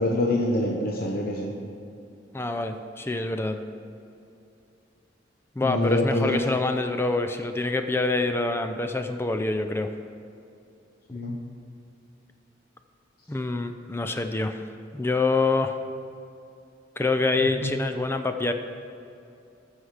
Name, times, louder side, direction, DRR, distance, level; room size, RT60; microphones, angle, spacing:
voice 1, 0.0-1.5 5.6-6.4 11.1-11.4 17.4-17.7, left 1 dB, 55° left, -1 dB, 0.9 m, -25 dB
voice 2, 2.3-3.6 5.6-9.9 13.3-14.6 14.9-15.8 17.0-18.5, left 3 dB, 15° left, 7 dB, 0.4 m, -26 dB
13.5 x 6.5 x 4.9 m, 2.6 s
head